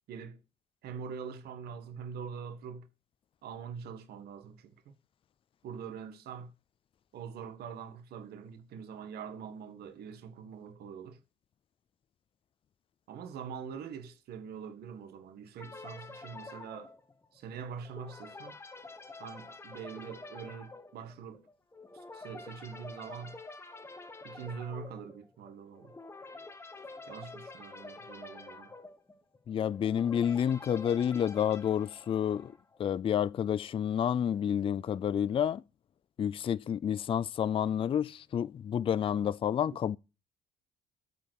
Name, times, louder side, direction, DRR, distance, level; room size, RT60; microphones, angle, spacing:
voice 1, 0.1-0.4 0.8-2.9 3.4-4.9 5.6-6.5 7.1-11.2 13.1-16.9 17.3-18.6 19.2-21.5 21.9-23.4 24.2-25.9 27.1-28.7, right 6 dB, 70° right, 1.7 m, -44 dB
sound 1, 15.6-32.8, left 3 dB, 15° left, 1.3 m, -48 dB
voice 2, 29.5-32.5 32.8-35.6 36.2-40.0, left 9 dB, 30° left, 0.4 m, -29 dB
9.0 x 5.4 x 6.4 m
cardioid pair, 110°, 17 cm